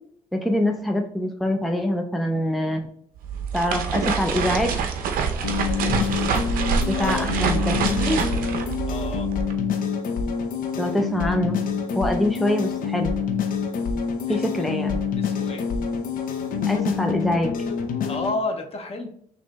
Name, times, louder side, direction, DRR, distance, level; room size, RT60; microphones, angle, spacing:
voice 1, 0.3-2.9 3.5-4.7 6.9-8.3 10.8-11.6 11.9-13.1 14.3-15.0 16.7-17.5, left 1 dB, ahead, 4 dB, 0.5 m, -24 dB
sound 1, 3.2-9.5, right 6 dB, 70° right, 0.6 m, -26 dB
sound 2, 5.4-18.4, left 6 dB, 65° left, 0.6 m, -26 dB
voice 2, 6.9-7.3 8.9-9.3 14.3-14.7 15.2-15.6 18.1-19.1, left 2 dB, 40° left, 4 dB, 0.9 m, -31 dB
6.0 x 2.7 x 2.2 m, 0.64 s
supercardioid pair, 60°, 15 cm